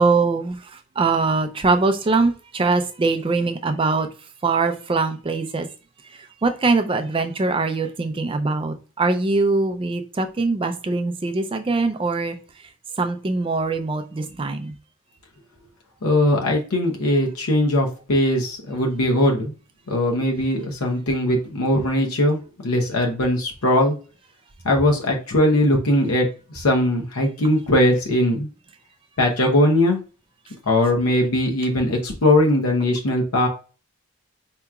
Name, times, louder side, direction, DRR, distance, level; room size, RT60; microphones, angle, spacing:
voice 1, 0.0-4.1 4.4-5.7 6.1-12.4 13.0-14.7, right 3 dB, 25° right, 0.3 m, -22 dB
voice 2, 16.0-19.5 19.9-22.4 22.6-23.9 24.6-26.3 26.5-28.5 29.2-30.0 30.7-33.5, left 1 dB, 80° left, 0.7 m, -20 dB
4.7 x 2.9 x 2.3 m
head